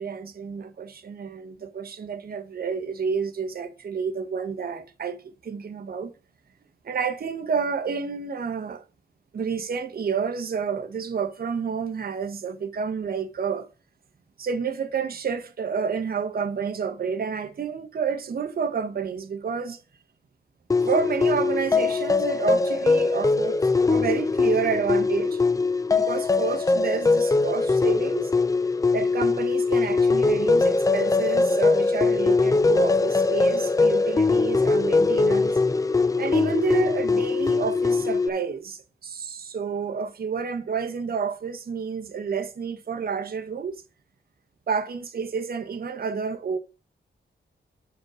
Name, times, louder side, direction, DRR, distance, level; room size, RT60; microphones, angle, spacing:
voice 1, 0.0-5.2 5.4-6.1 6.8-8.8 9.3-13.7 14.4-19.8 20.8-23.6 23.9-25.4 25.9-28.3 28.9-35.5 36.2-43.8 44.7-46.6, right 6 dB, 50° right, 0.9 m, -29 dB
sound 1, 20.7-38.3, left 3 dB, 20° left, 0.4 m, -22 dB
6.1 x 5.1 x 6.2 m
wide cardioid pair, 155°, 19 cm